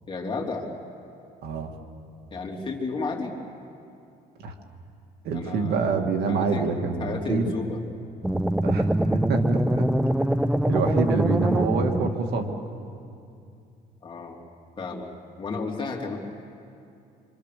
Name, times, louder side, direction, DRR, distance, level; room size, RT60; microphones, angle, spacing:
voice 1, 0.1-0.7 2.3-3.4 5.3-6.0 6.3-6.7 7.0-7.8 14.0-14.4 14.8-15.1 15.4-16.2, left 4 dB, 30° left, 0 dB, 3.2 m, -32 dB
voice 2, 5.2-7.5 8.6-9.9 10.6-12.5, right 4 dB, 70° right, 4 dB, 2.3 m, -26 dB
sound 1, 8.2-12.5, right 1 dB, 5° right, 0.5 m, -24 dB
26.5 x 25.5 x 6.8 m, 2.6 s
cardioid pair, 110°, 17 cm